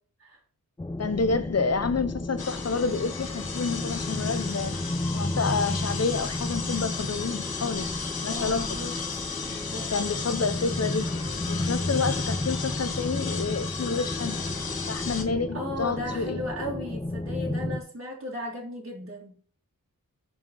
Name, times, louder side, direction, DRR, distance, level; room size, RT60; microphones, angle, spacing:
sound 1, 0.8-17.8, left 1 dB, 10° left, 0.5 m, -32 dB
voice 1, 1.0-4.8 5.1-7.9 8.2-8.8 9.9-11.1 11.5-14.5 14.9-16.4, left 4 dB, 45° left, 0.9 m, -29 dB
sound 2, 2.4-15.2, left 5 dB, 90° left, 1.2 m, -35 dB
voice 2, 8.3-9.0 9.5-9.9 15.5-19.3, left 1 dB, 40° right, 2.3 m, -36 dB
6.5 x 5.9 x 5.4 m
wide cardioid pair, 70°, 35 cm